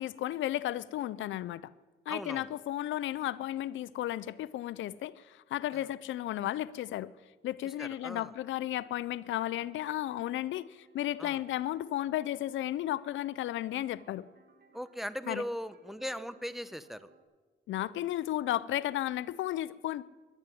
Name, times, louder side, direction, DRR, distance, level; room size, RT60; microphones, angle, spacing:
voice 1, 0.0-1.7 2.1-7.1 7.4-14.3 15.3-15.4 17.7-20.0, left 13 dB, 85° left, 19 dB, 0.5 m, -34 dB
voice 2, 2.1-2.5 5.7-5.8 7.8-8.3 11.2-11.4 14.7-17.1, equal, ahead, 13 dB, 0.8 m, -39 dB
sound 1, 9.2-17.2, right 4 dB, 55° right, 2.0 m, -64 dB
11.0 x 10.5 x 9.9 m, 1.3 s
cardioid pair, 70°, 19 cm